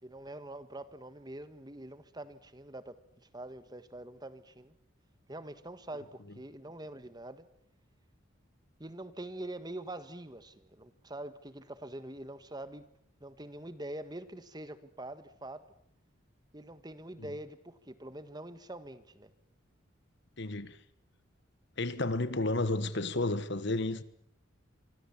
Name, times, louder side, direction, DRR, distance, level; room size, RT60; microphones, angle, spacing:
voice 1, 0.0-3.0 3.3-4.7 5.3-7.5 8.8-12.9 13.2-15.6 16.5-19.3, right 1 dB, 20° right, 1.5 m, -44 dB
voice 2, 20.4-20.8 21.8-24.0, left 2 dB, 55° left, 1.4 m, -31 dB
27.0 x 24.5 x 7.2 m
head